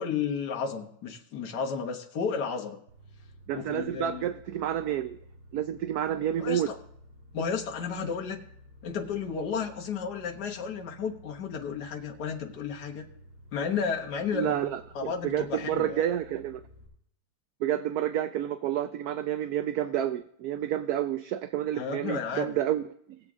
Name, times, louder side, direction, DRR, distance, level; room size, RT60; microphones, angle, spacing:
voice 1, 0.0-2.8 3.5-4.3 6.4-6.8 7.3-8.4 8.8-13.1 13.5-14.6 15.0-16.1 21.7-22.5, left 6 dB, 60° left, 1 dB, 1.7 m, -32 dB
sound 1, 2.9-16.9, left 1 dB, 45° right, 4.6 m, -53 dB
voice 2, 3.5-5.2 5.5-6.7 14.3-16.6 17.6-22.8 23.1-23.2, right 11 dB, 70° right, 11 dB, 0.9 m, -29 dB
19.0 x 7.6 x 3.6 m, 0.71 s
omnidirectional pair, 2.0 m